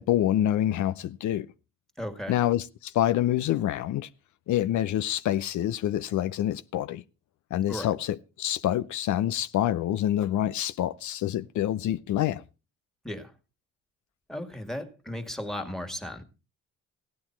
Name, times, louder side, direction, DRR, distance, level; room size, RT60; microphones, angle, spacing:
voice 1, 0.0-1.5 2.3-4.1 4.5-7.0 7.5-12.4, left 12 dB, 75° left, 0.7 m, -27 dB
voice 2, 2.0-2.4 7.7-7.9 13.0-13.3 14.3-16.2, left 1 dB, ahead, 2.1 m, -35 dB
16.0 x 9.6 x 4.5 m
cardioid pair, 90°, 30 cm